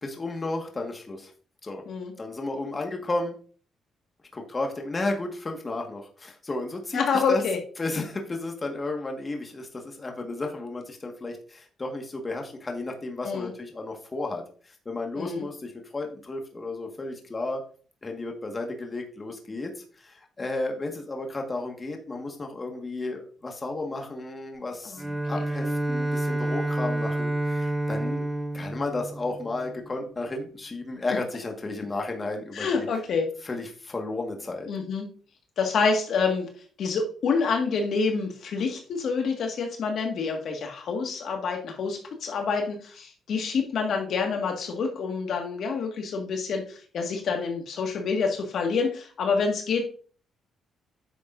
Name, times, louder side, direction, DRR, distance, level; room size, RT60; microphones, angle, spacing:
voice 1, 0.0-1.3 1.6-1.8 2.2-3.4 4.3-7.4 7.8-17.6 18.0-28.2 28.5-32.9 33.4-34.7, left 2 dB, 25° left, 2 dB, 1.7 m, -33 dB
voice 2, 6.9-7.6 13.2-13.5 15.2-15.5 24.8-25.0 32.5-33.2 34.7-35.1 35.6-36.5 36.8-49.8, left 5 dB, 65° left, 3 dB, 1.8 m, -27 dB
Bowed string instrument, 25.0-30.1, right 1 dB, 10° right, 0.6 m, -29 dB
9.8 x 6.9 x 2.6 m, 0.42 s
cardioid pair, 90°, 0 cm